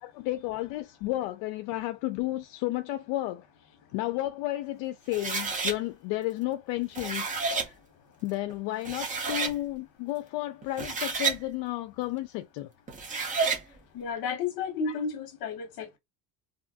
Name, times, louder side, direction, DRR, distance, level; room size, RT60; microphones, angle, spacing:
voice 1, 0.0-7.8 8.2-12.7 13.7-13.8, left 16 dB, 80° left, 0.5 m, -32 dB
sound 1, 5.1-5.8 6.8-7.7 8.5-8.6 8.9-9.6 10.6-11.4 12.9-13.6, right 4 dB, 20° right, 0.7 m, -30 dB
voice 2, 13.9-16.0, left 5 dB, 55° left, 1.2 m, -32 dB
2.8 x 2.5 x 2.4 m
cardioid pair, 160°, 41 cm